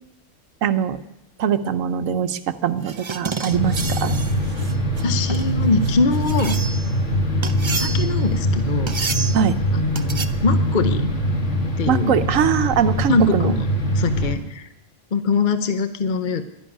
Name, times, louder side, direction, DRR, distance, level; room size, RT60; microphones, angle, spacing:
voice 1, 0.6-1.0 1.4-4.1 9.3-9.5 11.9-13.5, right 8 dB, 80° right, 11 dB, 1.1 m, -21 dB
sound 1, 2.8-6.9 7.4-8.3 8.9-9.5 9.9-10.3, right 5 dB, 35° right, 0.5 m, -30 dB
sound 2, 3.5-14.3, equal, 65° left, 2.5 m, -23 dB
voice 2, 5.0-6.6 7.7-9.0 9.7-11.1 11.8-12.2 13.1-13.7 13.9-14.7 15.1-16.4, left 4 dB, 45° left, 9 dB, 0.8 m, -22 dB
12.0 x 11.0 x 9.9 m, 0.92 s
omnidirectional pair, 1.4 m